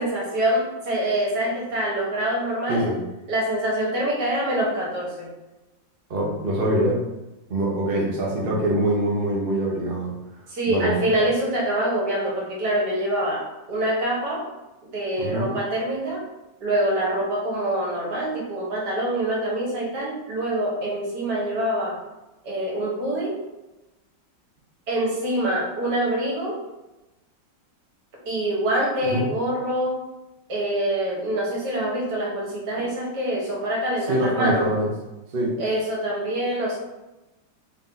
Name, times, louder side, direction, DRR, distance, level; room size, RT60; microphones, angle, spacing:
voice 1, 0.0-2.9 3.3-5.3 10.5-14.4 14.8-16.2 16.6-22.0 22.4-23.4 24.9-26.6 28.3-30.0 30.5-34.7 35.6-36.8, right 1 dB, 65° right, -4 dB, 1.7 m, -25 dB
voice 2, 6.1-7.0 7.5-10.1 10.7-10.9 15.2-15.5 29.0-29.2 34.1-34.9 35.3-35.5, right 1 dB, 45° right, -3 dB, 0.8 m, -24 dB
4.0 x 2.7 x 3.8 m, 1.0 s
omnidirectional pair, 2.0 m